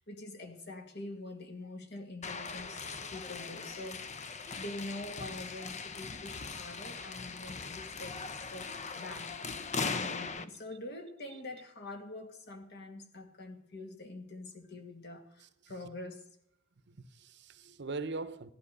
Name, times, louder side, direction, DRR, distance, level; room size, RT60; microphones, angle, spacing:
voice 1, 0.0-8.2 8.5-16.3, left 2 dB, 55° left, 2.3 m, -45 dB
sound 1, 2.2-10.5, left 4 dB, 35° left, 0.8 m, -40 dB
voice 2, 15.4-15.7 16.9-18.5, right 3 dB, 55° right, 0.9 m, -42 dB
16.0 x 11.0 x 6.8 m
head